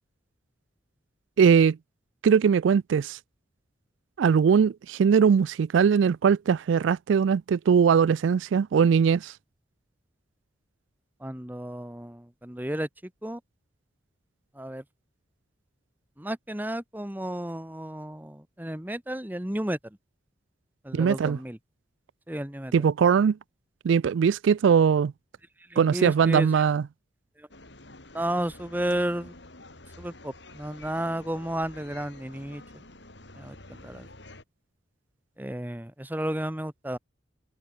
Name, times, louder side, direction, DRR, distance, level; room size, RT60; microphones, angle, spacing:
voice 1, 1.4-1.8 2.2-3.2 4.2-9.3 20.9-21.4 22.7-23.4 23.8-25.1 25.8-26.8, right 6 dB, 75° right, 0.3 m, -21 dB
voice 2, 11.2-12.9 13.2-13.4 14.5-14.8 16.2-20.0 20.8-21.6 22.3-22.7 25.7-26.6 27.4-27.5 28.1-29.4 30.0-32.8 33.4-34.1 35.4-37.0, right 1 dB, 10° right, 1.1 m, -32 dB
sound 1, 27.5-34.4, left 2 dB, 65° left, 4.8 m, -48 dB
head